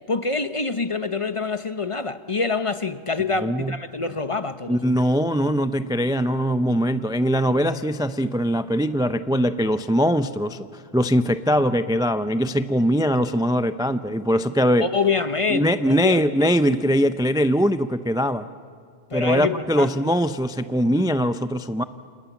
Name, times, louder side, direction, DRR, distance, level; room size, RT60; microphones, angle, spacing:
voice 1, 0.1-4.8 14.8-16.2 19.1-19.9, left 4 dB, 30° left, 0.8 m, -26 dB
voice 2, 3.4-3.8 4.7-14.9 15.5-18.5 19.1-21.8, equal, 5° right, 0.4 m, -21 dB
28.5 x 28.0 x 7.2 m
omnidirectional pair, 1.1 m